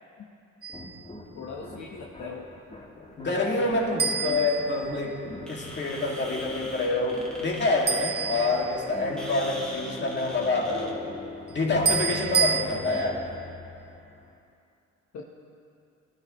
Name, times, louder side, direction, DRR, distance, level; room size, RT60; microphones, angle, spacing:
sound 1, 0.6-1.0 4.0-5.4 7.9-9.2 11.9-12.6, right 5 dB, 35° right, 1.2 m, -28 dB
sound 2, 0.7-14.4, left 2 dB, 20° left, 1.7 m, -43 dB
voice 1, 1.4-2.5 15.1-15.2, left 4 dB, 60° left, -2 dB, 1.3 m, -39 dB
voice 2, 3.0-11.2 11.5-13.2, left 2 dB, 35° left, -2 dB, 2.5 m, -27 dB
sound 3, 5.4-11.1, left 1 dB, 5° left, 2.2 m, -42 dB
19.5 x 13.0 x 3.2 m, 2.6 s
cardioid pair, 90°, 30 cm